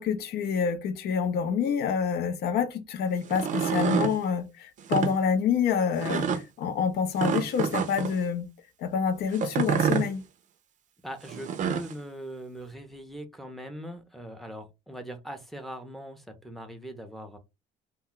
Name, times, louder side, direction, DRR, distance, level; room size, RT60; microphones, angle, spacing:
voice 1, 0.0-8.5 8.8-10.2, left 7 dB, 70° left, 0.6 m, -27 dB
sound 1, 3.2-4.2 4.8-5.1 6.0-6.4 7.2-8.2 9.3-10.1 11.3-11.9, right 7 dB, 50° right, 0.5 m, -27 dB
voice 2, 11.0-17.4, equal, ahead, 0.6 m, -41 dB
2.2 x 2.1 x 3.7 m
cardioid pair, 110°, 17 cm